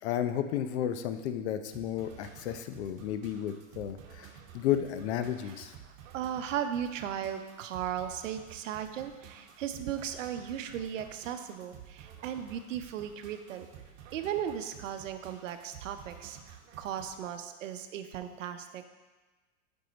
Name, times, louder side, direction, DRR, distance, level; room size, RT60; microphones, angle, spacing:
voice 1, 0.0-5.7, left 10 dB, 60° left, 9 dB, 0.7 m, -33 dB
sound 1, 1.7-17.2, right 8 dB, 60° right, 1.3 m, -52 dB
voice 2, 5.8-13.7 14.1-18.9, right 9 dB, 80° right, 8 dB, 0.8 m, -37 dB
7.6 x 5.5 x 4.0 m, 1.3 s
supercardioid pair, 140°, 37 cm